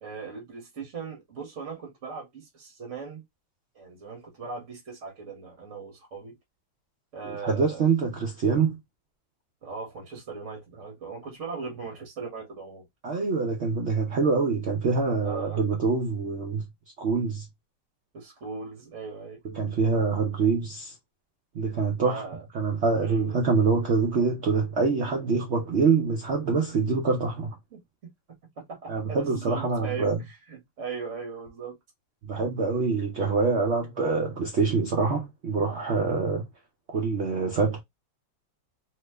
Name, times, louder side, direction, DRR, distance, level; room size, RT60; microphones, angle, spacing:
voice 1, 0.0-3.2 3.7-6.4 7.1-7.9 9.6-12.9 15.2-15.6 18.1-19.4 22.0-22.4 23.0-23.4 27.7-31.8, right 5 dB, 50° right, 1.1 m, -39 dB
voice 2, 7.2-8.8 13.0-16.6 17.0-17.5 19.5-20.9 21.5-22.2 22.5-27.6 28.9-30.2 32.2-36.5 36.9-37.8, right 4 dB, 70° right, 0.6 m, -25 dB
2.9 x 2.1 x 3.2 m
omnidirectional pair, 1.9 m